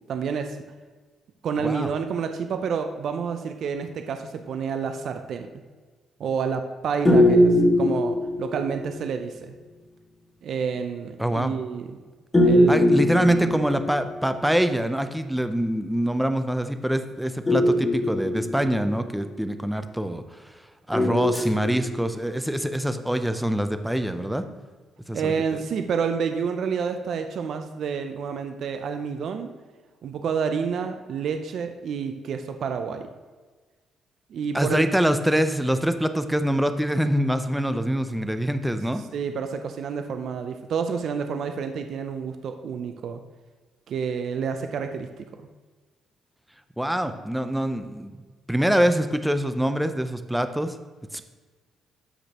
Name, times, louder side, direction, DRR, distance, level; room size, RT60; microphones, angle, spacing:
voice 1, 0.1-0.6 1.4-5.5 6.2-9.5 10.4-12.0 12.4-13.0 22.5-22.6 25.1-29.5 30.0-33.0 34.3-34.9 39.1-43.2 43.9-45.2, right 6 dB, 65° right, 7 dB, 0.5 m, -29 dB
voice 2, 1.6-1.9 11.2-11.5 12.7-20.5 20.9-24.4 25.1-25.3 34.5-39.0 46.8-48.1 48.5-50.7 51.1-51.2, equal, 5° right, 9 dB, 0.6 m, -25 dB
sound 1, 7.1-8.8 12.3-14.2 17.5-19.0 20.9-22.1, left 1 dB, 20° left, 1.8 m, -20 dB
13.0 x 5.0 x 2.9 m, 1.4 s
cardioid pair, 90°, 0 cm